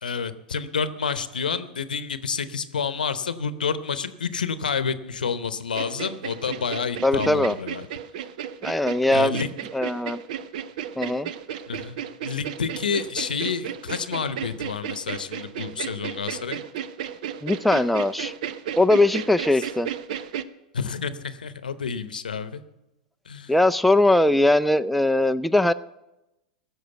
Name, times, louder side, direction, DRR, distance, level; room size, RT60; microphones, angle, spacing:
voice 1, 0.0-7.9 9.1-9.5 11.7-16.6 20.7-22.6 23.3-23.5, left 6 dB, 90° left, 13 dB, 0.8 m, -29 dB
sound 1, 5.7-20.4, right 9 dB, 65° right, 0.7 m, -34 dB
voice 2, 7.0-7.5 8.6-9.4 9.7-10.2 11.0-11.3 17.4-18.3 18.8-19.9 23.5-25.7, left 1 dB, ahead, 9 dB, 0.4 m, -20 dB
16.0 x 6.5 x 8.0 m, 0.95 s
hypercardioid pair, 105°, 5 cm